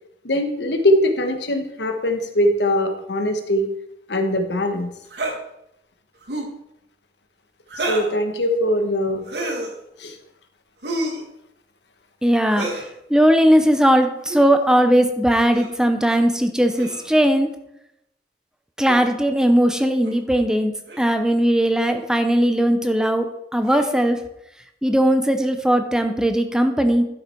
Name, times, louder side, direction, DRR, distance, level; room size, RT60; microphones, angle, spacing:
voice 1, 0.2-3.7 4.1-4.9 7.8-9.2 10.0-10.1, left 1 dB, 70° left, 6 dB, 1.3 m, -21 dB
sound 1, 5.1-5.4 6.2-6.6 7.7-8.2 9.2-9.7 10.8-11.2 12.5-12.9 14.2-14.5 15.5-15.8 16.7-17.2 18.9-19.0 20.0-20.2 20.9-21.1 21.9-22.1 23.6-24.0, right 1 dB, 65° right, 1.8 m, -29 dB
voice 2, 12.2-12.8 13.1-17.5 18.8-23.3 23.5-24.2 24.8-27.1, equal, 5° right, 7 dB, 0.6 m, -18 dB
12.0 x 6.4 x 4.5 m, 0.80 s
head